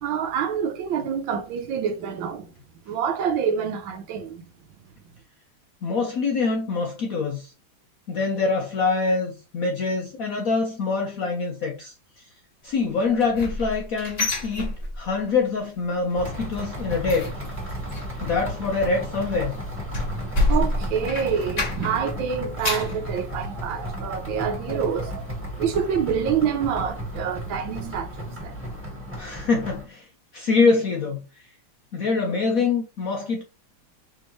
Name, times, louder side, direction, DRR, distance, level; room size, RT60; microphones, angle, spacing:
voice 1, 0.0-2.5 2.9-4.4 19.9-25.3 25.6-28.6, right 7 dB, 75° right, 1.5 m, -27 dB
voice 2, 5.8-7.5 8.1-12.2 12.6-17.3 18.2-19.6 29.2-31.5 31.9-33.4, left 4 dB, 70° left, 0.8 m, -25 dB
sound 1, 13.0-15.3 15.6-16.0 16.3-22.1 22.4-23.0 23.5-23.6 24.0-24.1, left 2 dB, 35° left, 0.6 m, -28 dB
sound 2, 16.2-29.8, equal, 5° right, 1.4 m, -34 dB
5.0 x 3.5 x 3.0 m
omnidirectional pair, 2.2 m